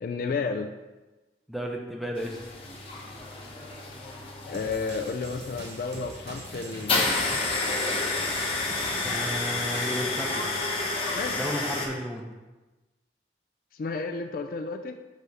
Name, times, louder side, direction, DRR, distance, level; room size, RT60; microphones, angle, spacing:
voice 1, 0.0-0.7 4.5-7.1 11.2-11.4 13.7-15.0, left 4 dB, 50° left, 6 dB, 0.3 m, -32 dB
voice 2, 1.5-2.4 9.0-10.5 11.3-12.3, equal, ahead, 0 dB, 0.6 m, -33 dB
sound 1, 2.2-11.9, left 3 dB, 30° left, 0.8 m, -30 dB
sound 2, 4.5-10.1, right 2 dB, 70° right, 0.8 m, -45 dB
6.1 x 3.4 x 5.4 m, 1.2 s
head